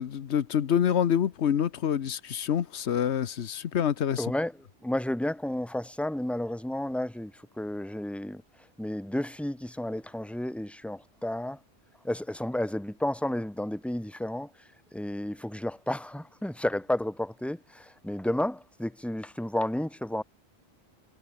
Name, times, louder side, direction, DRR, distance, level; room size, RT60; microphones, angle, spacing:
voice 1, 0.0-4.2, left 9 dB, 85° left, 1.2 m, -27 dB
voice 2, 4.2-11.6 12.0-20.2, left 1 dB, ahead, 1.8 m, -32 dB
omnidirectional pair, 1.1 m